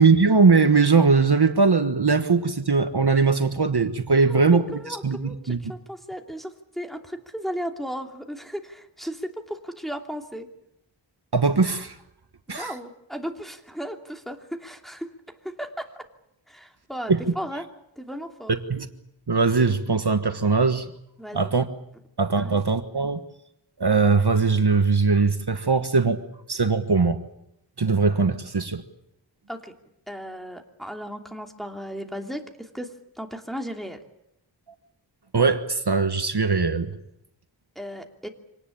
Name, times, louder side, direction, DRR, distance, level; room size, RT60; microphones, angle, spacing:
voice 1, 0.0-5.7 11.3-11.9 12.5-12.7 17.1-17.2 18.7-18.9 19.3-20.9 21.3-21.7 22.2-23.2 23.8-26.2 26.5-27.2 27.8-28.8 35.3-36.9, right 4 dB, 55° right, 8 dB, 1.4 m, -20 dB
voice 2, 4.3-10.5 12.5-15.1 15.4-16.0 16.5-17.7 18.0-18.5 21.2-21.5 22.4-22.6 29.5-29.7 30.1-32.9 33.2-34.0 37.8-38.3, equal, ahead, 3 dB, 2.9 m, -35 dB
25.5 x 18.5 x 8.6 m, 0.81 s
wide cardioid pair, 45°, 46 cm